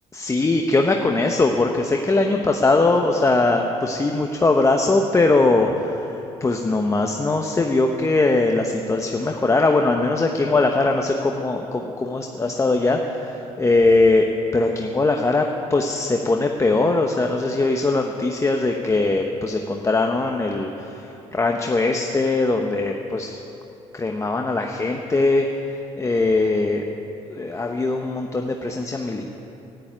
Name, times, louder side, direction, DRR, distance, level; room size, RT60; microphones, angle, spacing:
voice 1, 0.1-23.4 23.9-25.5 26.0-26.8 27.3-29.3, left 3 dB, 25° left, 2 dB, 1.0 m, -21 dB
11.5 x 10.0 x 9.2 m, 2.9 s
supercardioid pair, 80°, 13 cm